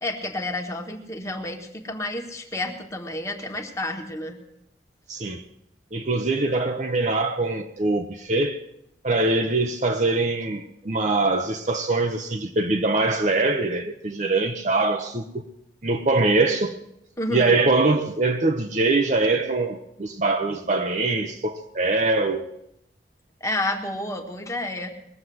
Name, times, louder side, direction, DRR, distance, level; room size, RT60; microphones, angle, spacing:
voice 1, 0.0-4.4 17.2-17.6 23.4-24.9, left 1 dB, 15° left, 1.6 m, -30 dB
voice 2, 5.1-5.4 5.9-8.6 9.0-15.4 15.8-16.8 17.3-22.5, right 3 dB, 45° right, 0.8 m, -23 dB
20.5 x 7.3 x 7.8 m
head